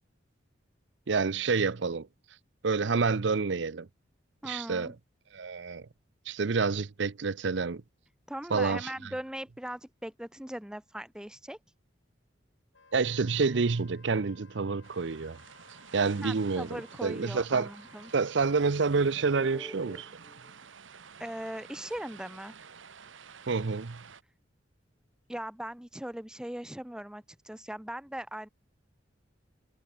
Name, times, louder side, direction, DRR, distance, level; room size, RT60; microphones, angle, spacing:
voice 1, 1.1-2.1 2.6-3.9 4.4-4.9 5.3-5.9 6.3-7.8 8.5-8.9 12.9-15.4 15.9-17.7 18.1-20.1 23.5-24.0, right 4 dB, 70° right, 0.6 m, -28 dB
voice 2, 4.4-4.9 8.3-11.6 16.2-18.1 19.3-20.6 21.2-22.5 25.3-28.5, right 1 dB, 5° right, 0.5 m, -40 dB
Wind instrument woodwind instrument, 12.7-18.8, left 4 dB, 80° left, 2.8 m, -59 dB
sound 1, 14.8-24.2, right 6 dB, 85° right, 1.3 m, -51 dB
head